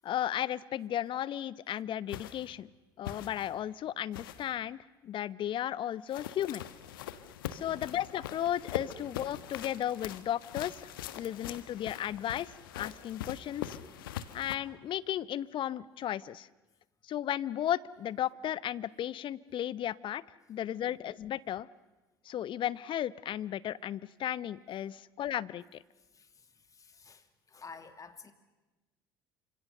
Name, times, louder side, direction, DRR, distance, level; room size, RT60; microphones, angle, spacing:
voice 1, 0.0-2.7 3.0-4.8 5.0-6.6 7.5-13.8 14.3-16.5 17.0-20.2 20.5-21.7 22.2-25.8, left 11 dB, 45° left, 19 dB, 0.8 m, -35 dB
sound 1, 2.1-2.5 3.0-3.6 4.1-4.5 6.1-14.5, left 11 dB, 75° left, 1.3 m, -42 dB
voice 2, 7.6-7.9 9.0-9.2 20.8-21.1 26.0-28.3, left 5 dB, 30° left, 8 dB, 2.7 m, -53 dB
28.0 x 26.0 x 6.7 m, 1.1 s
figure-of-eight pair, 65°, 12 cm